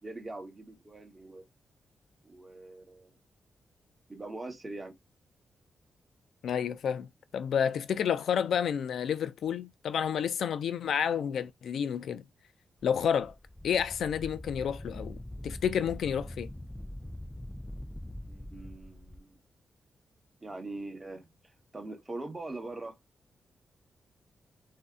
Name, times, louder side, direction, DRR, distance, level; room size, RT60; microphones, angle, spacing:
voice 1, 0.0-1.5 2.2-3.2 4.1-4.9 18.3-19.4 20.4-21.3 21.7-23.0, right 2 dB, 20° right, 1.0 m, -42 dB
voice 2, 6.4-12.2 12.8-13.3 13.6-15.2 15.4-16.5, left 8 dB, 80° left, 0.3 m, -30 dB
Wind, 12.8-19.2, left 1 dB, 5° left, 0.3 m, -43 dB
2.6 x 2.1 x 3.5 m
wide cardioid pair, 125°, 0 cm